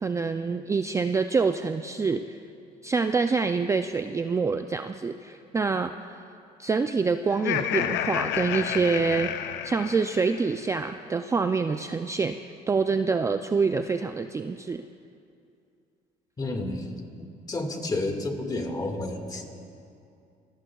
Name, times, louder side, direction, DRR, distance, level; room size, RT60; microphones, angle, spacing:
voice 1, 0.0-2.2 2.8-6.2 6.6-9.3 9.6-12.4 12.7-14.8, right 4 dB, 15° right, 8 dB, 0.3 m, -26 dB
Laughter, 7.3-10.5, left 10 dB, 85° left, 0.6 m, -30 dB
voice 2, 16.4-16.9 17.5-19.5, left 2 dB, 25° left, 3 dB, 1.8 m, -30 dB
24.5 x 17.0 x 2.3 m, 2.5 s
cardioid pair, 110°, 17 cm